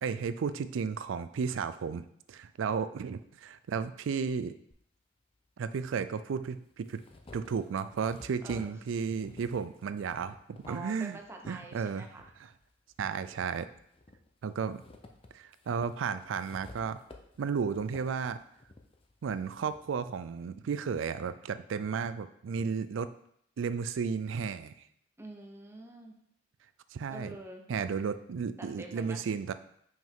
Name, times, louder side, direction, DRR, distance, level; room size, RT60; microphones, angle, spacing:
voice 1, 0.0-4.5 5.6-7.0 7.3-11.2 11.5-12.1 13.0-13.7 14.4-14.8 15.3-17.0 17.4-18.4 19.2-23.1 23.6-24.7 26.9-27.4 27.7-29.5, right 6 dB, 80° right, 13 dB, 0.4 m, -33 dB
sound 1, 4.7-4.8 5.9-6.0 6.5-11.6 12.1-13.3 13.7-19.9, left 2 dB, 30° left, 0.6 m, -54 dB
voice 2, 8.4-8.8 10.7-12.3 25.2-26.1 27.1-27.9 28.6-29.2, right 2 dB, 15° right, 2 dB, 0.8 m, -46 dB
5.7 x 5.1 x 3.6 m, 0.71 s
head